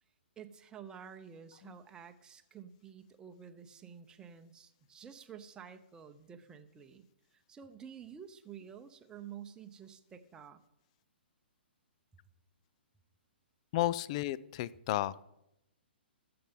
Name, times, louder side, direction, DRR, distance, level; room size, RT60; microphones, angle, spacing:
voice 1, 0.4-7.1 7.3-10.6, right 8 dB, 15° right, 6 dB, 0.9 m, -50 dB
voice 2, 13.7-15.2, left 14 dB, 35° left, 20 dB, 0.4 m, -33 dB
22.5 x 7.8 x 3.7 m, 0.85 s
figure-of-eight pair, 120°, 6 cm